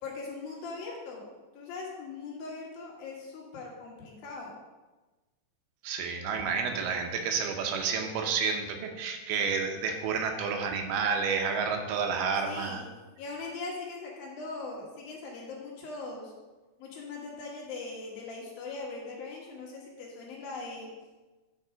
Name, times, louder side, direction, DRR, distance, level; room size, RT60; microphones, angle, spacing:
voice 1, 0.0-4.5 12.4-12.9 13.2-16.3 16.8-20.9, left 3 dB, 70° left, -2 dB, 3.6 m, -40 dB
voice 2, 5.8-12.8, right 5 dB, 90° right, 4 dB, 2.9 m, -30 dB
10.0 x 5.3 x 5.1 m, 1.2 s
omnidirectional pair, 4.3 m